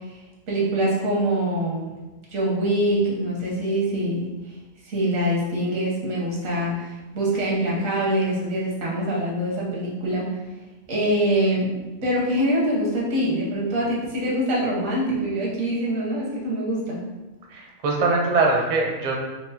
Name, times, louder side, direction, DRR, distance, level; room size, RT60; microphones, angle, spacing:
voice 1, 0.5-1.9 2.3-4.3 4.8-10.3 10.9-11.7 12.0-17.0, right 1 dB, 90° right, -4 dB, 1.4 m, -24 dB
voice 2, 17.5-19.1, right 3 dB, 50° right, 0 dB, 0.5 m, -22 dB
4.4 x 2.1 x 2.7 m, 1.2 s
omnidirectional pair, 1.4 m